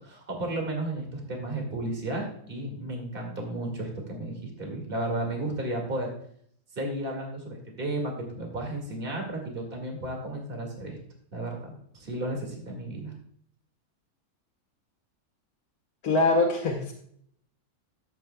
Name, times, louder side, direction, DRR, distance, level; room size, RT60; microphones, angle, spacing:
voice 1, 0.0-6.1 6.7-11.0 11.3-13.1, right 1 dB, 40° right, 1 dB, 2.2 m, -33 dB
voice 2, 16.0-16.9, left 2 dB, 80° left, -1 dB, 1.6 m, -23 dB
13.5 x 8.1 x 2.2 m, 0.64 s
omnidirectional pair, 1.5 m